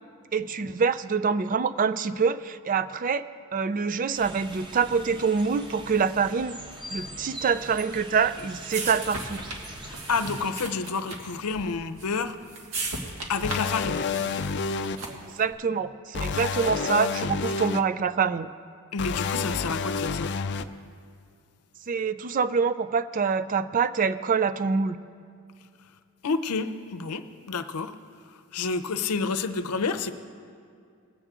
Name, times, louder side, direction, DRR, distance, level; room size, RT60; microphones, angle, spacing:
voice 1, 0.3-3.2 3.5-6.6 6.9-9.4 15.1-18.5 21.9-25.0, right 5 dB, 35° right, 13 dB, 0.3 m, -25 dB
sound 1, 4.2-10.5, right 1 dB, 20° right, 0.9 m, -42 dB
sound 2, 7.9-15.4, right 2 dB, 75° right, 1.6 m, -37 dB
voice 2, 9.9-12.4 13.3-14.1 18.9-20.3 26.2-27.9 28.5-30.1, left 4 dB, 90° left, 10 dB, 0.7 m, -29 dB
sound 3, 13.4-15.0 16.1-17.8 19.0-20.6, left 5 dB, 50° left, 0.4 m, -29 dB
20.5 x 8.0 x 3.7 m, 2.3 s
head